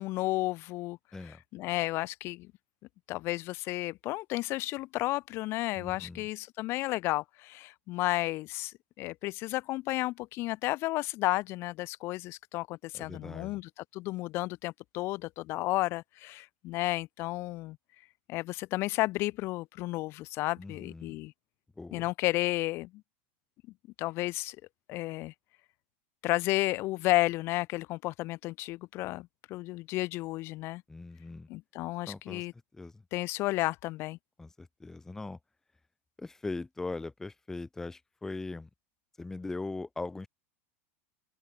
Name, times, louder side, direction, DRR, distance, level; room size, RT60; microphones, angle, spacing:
voice 1, 0.0-1.0 1.5-2.5 3.1-17.8 18.3-21.3 21.9-22.9 24.0-24.6 24.9-25.3 26.2-30.8 31.5-32.5 33.1-34.2, left 19 dB, 35° left, 1.1 m, -32 dB
voice 2, 1.1-1.4 5.7-6.3 12.9-13.6 20.6-21.2 21.8-22.1 30.9-31.5 32.1-33.0 34.4-35.4 36.2-38.7 39.2-40.3, left 3 dB, 5° left, 1.2 m, -40 dB
open air
supercardioid pair, 165°, 7 cm